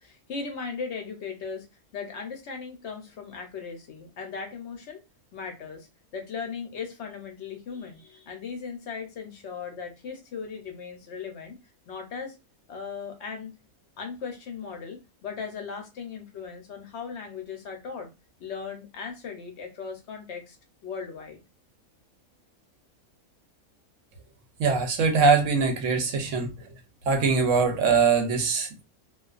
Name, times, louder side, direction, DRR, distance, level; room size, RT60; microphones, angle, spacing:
voice 1, 0.0-1.7 1.9-5.0 5.3-5.9 6.1-11.6 11.9-12.4 12.7-13.5 14.0-18.1 18.4-20.6 20.8-21.4, left 5 dB, 65° left, 0.8 m, -37 dB
voice 2, 24.6-26.5 27.1-28.8, right 4 dB, 70° right, 0.9 m, -22 dB
2.3 x 2.2 x 2.4 m
omnidirectional pair, 1.5 m